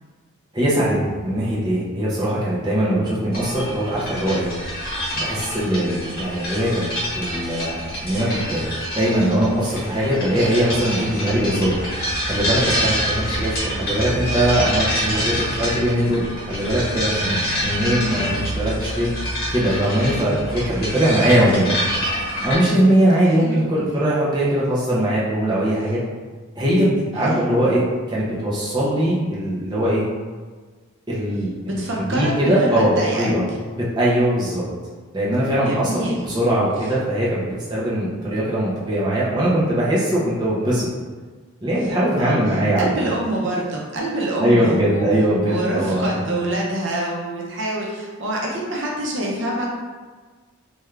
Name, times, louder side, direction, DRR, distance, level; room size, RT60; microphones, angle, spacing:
voice 1, 0.5-4.5 5.1-7.8 8.0-11.8 12.3-16.2 16.5-19.1 19.5-21.8 22.4-26.0 26.6-27.8 28.1-30.0 31.1-33.4 33.8-34.6 35.1-40.9 41.6-43.1 44.4-46.1, right 1 dB, 20° right, -7 dB, 0.6 m, -21 dB
sound 1, 3.3-22.5, equal, 45° left, 0.9 m, -26 dB
voice 2, 23.2-23.5 27.2-27.4 31.7-33.3 35.6-36.2 42.2-42.4 42.8-45.0 45.5-49.7, right 1 dB, 60° right, -3 dB, 0.6 m, -26 dB
3.4 x 2.3 x 3.2 m, 1.4 s
head